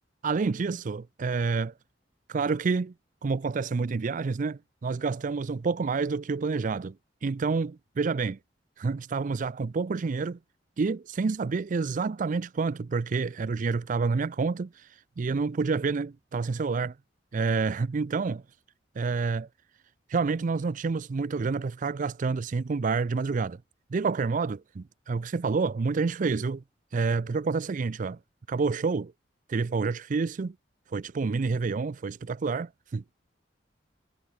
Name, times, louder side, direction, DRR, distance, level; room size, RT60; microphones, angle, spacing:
voice 1, 0.2-1.7 2.3-2.9 3.2-7.0 7.2-8.4 8.8-10.4 10.8-14.9 15.2-16.9 17.3-18.4 19.0-19.5 20.1-23.6 23.9-26.6 26.9-28.2 28.5-29.1 29.5-30.5 30.9-33.2, right 4 dB, 45° right, 0.4 m, -28 dB
head